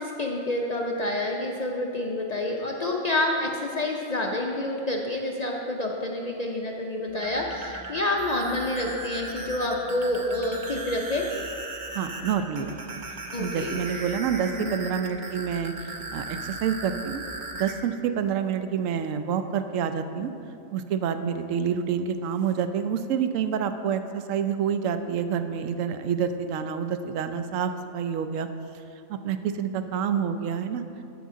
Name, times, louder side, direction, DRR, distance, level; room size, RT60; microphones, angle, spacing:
voice 1, 0.0-11.3 13.3-13.8 14.5-14.8, left 1 dB, 55° left, 0 dB, 0.4 m, -28 dB
sound 1, 7.1-17.7, right 2 dB, 45° right, 0.8 m, -37 dB
voice 2, 11.9-13.0 13.4-17.2 17.6-20.3 20.7-28.5 29.1-30.8, right 7 dB, 75° right, 9 dB, 0.9 m, -28 dB
13.0 x 5.6 x 3.6 m, 2.6 s
omnidirectional pair, 1.4 m